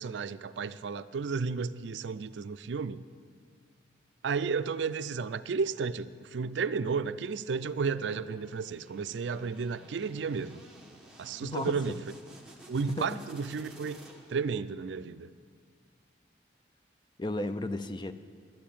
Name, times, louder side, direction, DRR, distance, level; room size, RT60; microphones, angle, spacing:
voice 1, 0.0-3.0 4.2-10.6 11.2-12.0 12.7-14.0 14.3-15.3, right 5 dB, 85° right, 14 dB, 0.4 m, -33 dB
sound 1, 7.7-14.5, right 1 dB, 5° right, 1.2 m, -53 dB
voice 2, 11.4-11.8 12.9-13.2 17.2-18.1, left 1 dB, 25° left, 10 dB, 0.5 m, -34 dB
12.0 x 9.4 x 8.7 m, 2.1 s
head